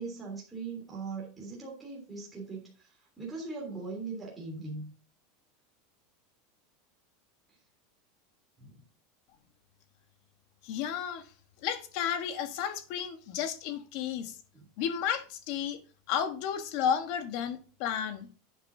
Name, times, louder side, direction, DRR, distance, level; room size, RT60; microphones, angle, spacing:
voice 1, 0.0-4.9 8.6-8.8 14.5-14.7, right 4 dB, 5° right, 3.1 m, -40 dB
voice 2, 10.6-11.3 11.6-14.4 14.8-15.8 16.1-18.3, left 8 dB, 45° left, 1.2 m, -32 dB
11.0 x 8.0 x 2.7 m
supercardioid pair, 180°, 0 cm